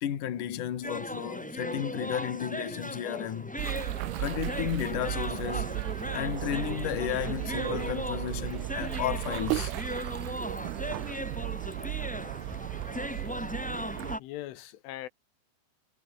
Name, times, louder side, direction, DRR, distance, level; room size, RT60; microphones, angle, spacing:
voice 1, 0.0-3.8 4.2-5.8 6.1-9.8, left 10 dB, 50° left, 3.1 m, -33 dB
sound 1, 0.8-14.2, equal, ahead, 2.5 m, -38 dB
sound 2, 3.6-14.2, right 24 dB, 90° right, 3.1 m, -35 dB
voice 2, 13.9-15.1, left 15 dB, 85° left, 3.8 m, -41 dB
omnidirectional pair, 5.5 m